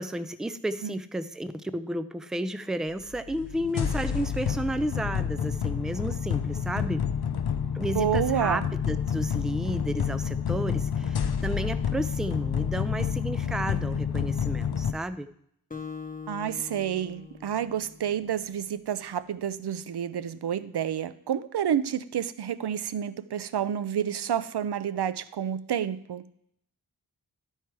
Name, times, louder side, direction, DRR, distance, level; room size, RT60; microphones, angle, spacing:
voice 1, 0.0-7.1 7.7-15.3, right 1 dB, ahead, 12 dB, 0.4 m, -32 dB
sound 1, 3.1-14.9, left 7 dB, 75° left, 0.6 m, -29 dB
voice 2, 7.9-8.7 16.3-26.2, right 9 dB, 85° right, 14 dB, 0.5 m, -29 dB
Acoustic guitar, 15.7-18.5, left 5 dB, 20° left, 0.9 m, -42 dB
12.0 x 4.5 x 4.7 m, 0.70 s
wide cardioid pair, 75°, 39 cm